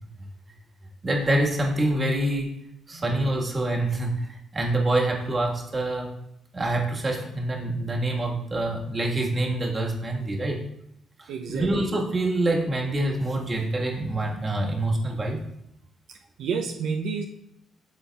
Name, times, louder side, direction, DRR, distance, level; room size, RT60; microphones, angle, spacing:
voice 1, 1.0-2.5 2.9-6.1 6.5-10.6 11.2-15.4, right 1 dB, 30° right, -1 dB, 1.5 m, -26 dB
voice 2, 11.3-11.9 16.4-17.2, right 5 dB, 80° right, 2 dB, 0.5 m, -30 dB
11.5 x 3.9 x 2.3 m, 0.79 s
cardioid pair, 90°, 0 cm